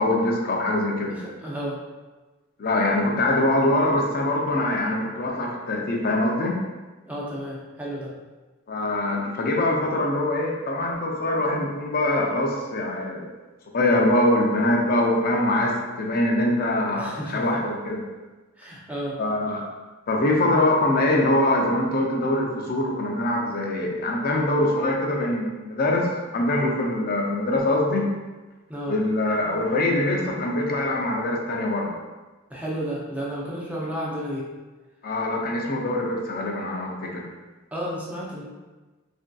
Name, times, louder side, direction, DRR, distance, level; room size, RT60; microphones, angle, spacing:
voice 1, 0.0-1.2 2.6-6.6 8.7-13.3 13.7-18.0 19.2-19.6 20.1-26.1 26.3-28.1 28.9-31.9 35.0-37.3, left 1 dB, 45° left, -1 dB, 0.5 m, -23 dB
voice 2, 1.1-1.8 7.1-8.1 17.0-17.6 18.6-19.2 28.7-29.0 32.5-34.5 37.7-38.4, equal, 5° right, -5 dB, 0.5 m, -32 dB
3.3 x 2.6 x 2.2 m, 1.2 s
head